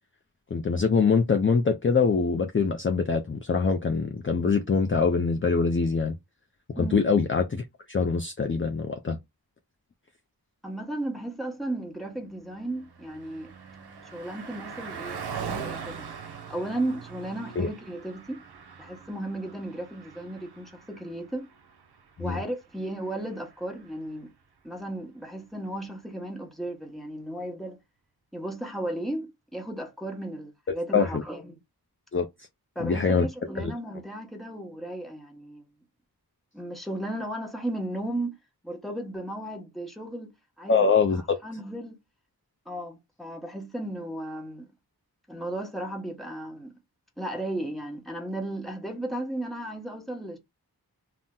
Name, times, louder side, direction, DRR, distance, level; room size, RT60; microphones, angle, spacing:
voice 1, 0.5-6.1 6.7-9.2 17.6-17.7 22.2-22.4 30.9-31.2 32.1-32.3 32.8-33.3 33.6-33.7 40.7-41.4, left 5 dB, 35° left, 0.4 m, -24 dB
voice 2, 10.6-13.5 14.0-16.1 16.5-18.4 18.8-21.5 22.2-24.3 24.6-27.8 28.3-31.6 32.7-35.6 36.5-38.4 38.6-40.3 40.6-42.0 42.7-44.7 45.3-46.7 47.2-50.4, right 1 dB, ahead, 1.0 m, -35 dB
Car passing by, 12.3-24.1, right 6 dB, 80° right, 0.6 m, -42 dB
2.7 x 2.0 x 3.6 m
wide cardioid pair, 55°, 39 cm